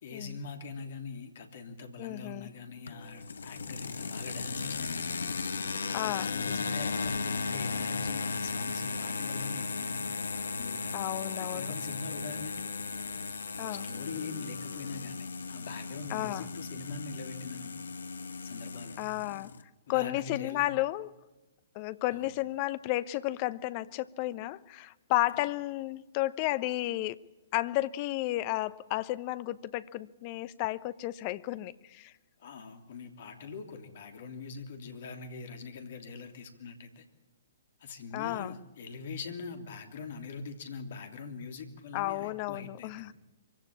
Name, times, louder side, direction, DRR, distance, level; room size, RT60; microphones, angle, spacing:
voice 1, 0.0-5.1 5.9-10.1 10.6-11.1 11.4-12.7 13.7-17.8 18.4-19.1 19.9-20.7 22.1-22.3 25.3-25.4 32.4-37.0 37.8-43.1, left 4 dB, 55° left, 3.1 m, -43 dB
voice 2, 2.0-2.5 5.9-6.4 10.9-11.7 13.6-13.8 16.1-16.5 19.0-19.5 19.9-21.1 21.7-27.2 27.5-32.1 38.1-38.5 41.9-43.1, left 17 dB, 35° left, 0.9 m, -32 dB
Airplane propeller, 2.9-19.6, left 4 dB, 70° left, 1.3 m, -36 dB
24.5 x 16.5 x 8.7 m
figure-of-eight pair, 120°, 0 cm